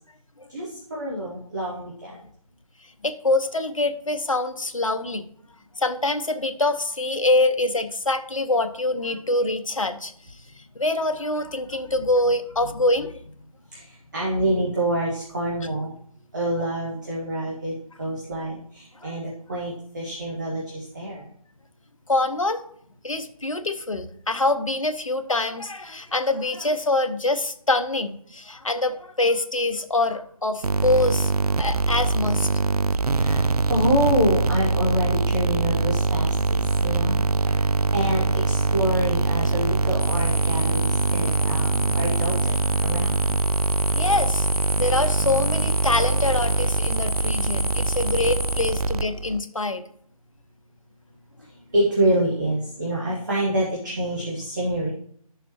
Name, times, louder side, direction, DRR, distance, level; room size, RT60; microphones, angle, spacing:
voice 1, 0.5-2.2 13.7-15.9 16.3-21.2 32.9-37.7 37.9-43.2 51.5-54.9, right 1 dB, 30° right, -5 dB, 1.6 m, -27 dB
voice 2, 3.0-5.3 5.8-10.1 10.6-13.2 19.0-19.2 22.1-22.6 23.0-32.5 43.9-44.5 44.8-49.8, left 2 dB, 60° left, 8 dB, 0.8 m, -25 dB
sound 1, 30.6-49.4, right 3 dB, 80° right, 0.4 m, -23 dB
sound 2, 40.0-48.7, left 1 dB, 10° left, 2.2 m, -33 dB
11.5 x 6.7 x 3.1 m, 0.65 s
figure-of-eight pair, 160°, 19 cm